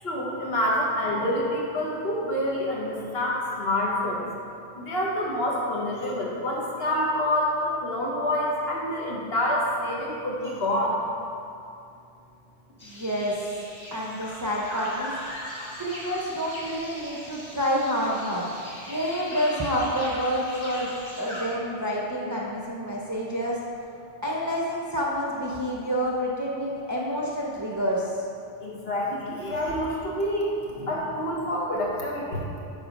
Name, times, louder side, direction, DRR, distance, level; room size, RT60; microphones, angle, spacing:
voice 1, 0.0-4.2 4.8-11.0 28.6-32.4, left 1 dB, 55° left, -4 dB, 1.5 m, -27 dB
sound 1, 12.8-21.4, equal, 35° left, 1.9 m, -40 dB
voice 2, 12.8-13.4 13.9-15.1 15.8-18.5 18.9-23.6 24.2-28.0, equal, 20° right, -4 dB, 0.6 m, -28 dB
9.9 x 4.0 x 5.2 m, 2.5 s
omnidirectional pair, 1.2 m